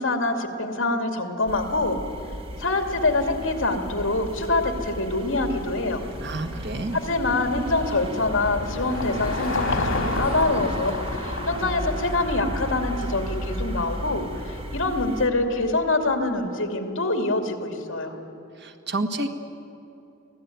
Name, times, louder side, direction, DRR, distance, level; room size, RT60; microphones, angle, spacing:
voice 1, 0.0-2.0 2.6-6.0 6.9-18.2, left 2 dB, 65° left, 5 dB, 2.6 m, -25 dB
sound 1, 1.5-15.3, right 1 dB, 25° right, 1.4 m, -34 dB
voice 2, 6.2-7.0 18.6-19.3, right 2 dB, 55° right, 5 dB, 1.6 m, -29 dB
Car passing by / Engine, 7.1-13.6, left 3 dB, 85° left, 2.0 m, -32 dB
24.5 x 17.0 x 9.3 m, 2.8 s
head